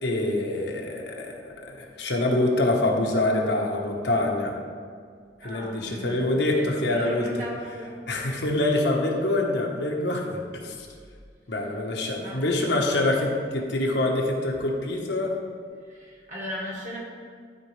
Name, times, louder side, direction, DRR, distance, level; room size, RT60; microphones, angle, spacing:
voice 1, 0.0-4.6 5.4-7.3 8.1-10.9 11.5-15.3, left 2 dB, 75° left, 0 dB, 1.2 m, -25 dB
voice 2, 5.4-7.9 12.2-12.5 15.9-17.0, equal, 45° right, -4 dB, 1.7 m, -37 dB
12.5 x 4.5 x 3.2 m, 2.1 s
head